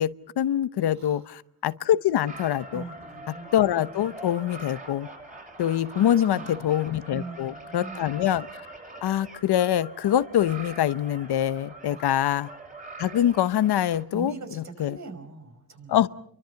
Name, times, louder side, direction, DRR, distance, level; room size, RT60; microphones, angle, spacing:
voice 1, 0.0-2.8 3.3-5.1 5.6-8.5 9.0-12.5 13.0-15.0 15.9-16.1, left 11 dB, 75° left, 15 dB, 0.9 m, -24 dB
sound 1, 2.3-14.0, right 2 dB, 20° right, 6.7 m, -43 dB
voice 2, 2.7-3.3 6.0-6.8 7.1-8.0 11.9-12.1 14.1-16.0, right 3 dB, 45° right, 6 dB, 5.6 m, -41 dB
29.5 x 23.5 x 5.8 m, 0.64 s
wide cardioid pair, 135°, 39 cm